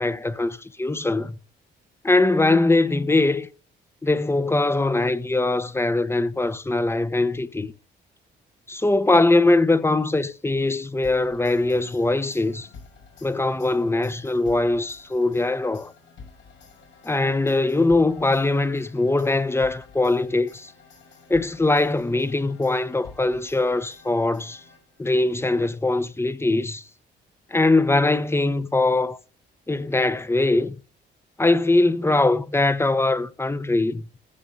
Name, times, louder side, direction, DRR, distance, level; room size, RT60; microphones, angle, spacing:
voice 1, 0.0-1.4 2.0-3.5 4.0-7.7 8.7-12.7 13.2-15.9 17.0-20.7 21.3-24.6 25.0-26.8 27.5-29.2 29.7-30.7 31.4-34.1, left 2 dB, 10° left, 1.0 m, -21 dB
sound 1, 11.0-25.1, left 4 dB, 70° left, 5.8 m, -49 dB
15.5 x 7.0 x 5.3 m
cardioid pair, 90°, 20 cm